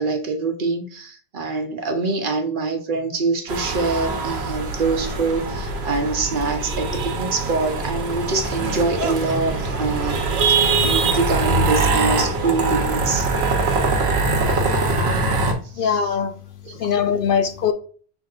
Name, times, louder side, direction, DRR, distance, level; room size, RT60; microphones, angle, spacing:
voice 1, 0.0-13.3 15.7-16.1 16.6-16.8, right 3 dB, 55° right, 0.9 m, -25 dB
sound 1, 3.5-15.5, right 3 dB, 80° right, 1.1 m, -22 dB
voice 2, 15.8-16.3 16.8-17.7, left 7 dB, 65° left, 0.7 m, -21 dB
6.1 x 3.6 x 2.4 m
omnidirectional pair, 1.1 m